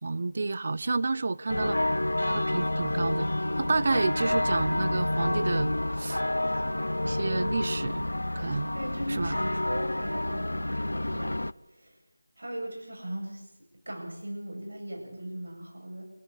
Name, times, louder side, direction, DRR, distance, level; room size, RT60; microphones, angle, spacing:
voice 1, 0.0-1.8 2.3-6.2 7.0-8.0 8.3-8.7 9.1-9.4, right 3 dB, 40° right, 17 dB, 0.8 m, -30 dB
sound 1, 1.5-11.5, left 1 dB, 85° left, 0.8 m, -29 dB
voice 2, 8.7-11.4 11.7-11.9 12.4-13.4 13.9-16.0, right 1 dB, 70° right, 1 dB, 8.0 m, -38 dB
28.0 x 12.0 x 8.4 m, 0.85 s
figure-of-eight pair, 170°, 0 cm